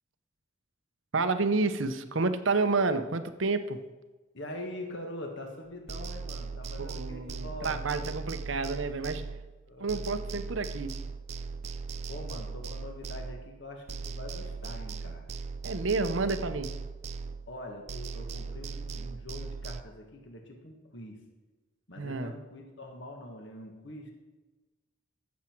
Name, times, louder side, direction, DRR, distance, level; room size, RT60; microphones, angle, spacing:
voice 1, 1.1-3.8 6.8-9.2 9.8-11.0 15.6-16.8 22.0-22.3, right 3 dB, 70° right, 10 dB, 0.8 m, -30 dB
voice 2, 4.3-8.2 9.7-10.0 12.1-15.2 17.5-21.2 21.9-24.1, left 1 dB, 60° left, 2 dB, 1.7 m, -43 dB
sound 1, 5.9-9.6 9.9-13.6 13.9-17.6 17.9-19.8, right 4 dB, 30° right, 0.3 m, -39 dB
14.5 x 7.5 x 4.6 m, 1.2 s
head